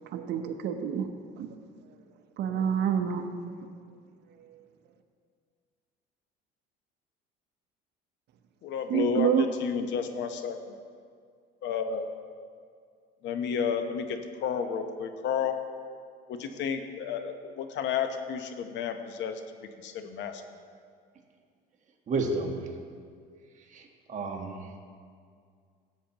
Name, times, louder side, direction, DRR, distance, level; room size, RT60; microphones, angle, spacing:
voice 1, 0.0-1.1 1.4-1.5 2.4-3.3 4.4-4.6 8.9-9.5, right 8 dB, 60° right, 6 dB, 0.9 m, -28 dB
voice 2, 8.6-9.3 9.6-10.8 11.6-12.1 13.2-15.6 16.3-20.4, left 7 dB, 65° left, 7 dB, 0.9 m, -32 dB
voice 3, 22.1-22.7 23.7-24.7, right 3 dB, 40° right, 1 dB, 1.4 m, -32 dB
16.0 x 8.4 x 3.0 m, 2.1 s
cardioid pair, 110°, 20 cm